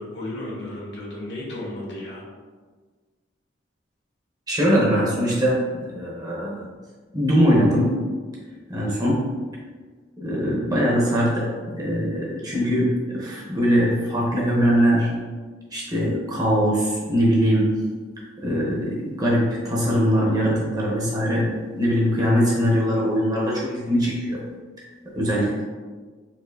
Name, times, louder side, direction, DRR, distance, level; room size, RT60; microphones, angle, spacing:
voice 1, 0.0-2.2, left 1 dB, 70° left, -5 dB, 1.1 m, -33 dB
voice 2, 4.5-6.7 7.1-8.0 8.7-9.3 10.2-15.1 15.7-17.8 18.4-24.4 24.8-24.9 25.2-25.6, equal, 20° right, -5 dB, 0.8 m, -21 dB
4.2 x 2.7 x 2.6 m, 1.4 s
head